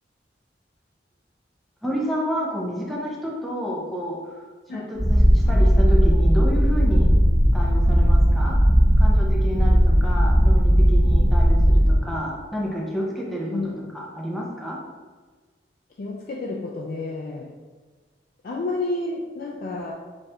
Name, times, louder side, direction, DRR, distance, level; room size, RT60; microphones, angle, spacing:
voice 1, 1.8-4.4 4.7-7.1 7.5-8.6 9.0-14.8, equal, ahead, -4 dB, 0.5 m, -30 dB
Purr, 5.0-12.0, equal, 80° left, 1.3 m, -17 dB
voice 2, 16.0-17.5 18.4-19.9, left 2 dB, 50° left, -2 dB, 0.3 m, -30 dB
4.2 x 2.4 x 3.3 m, 1.4 s
head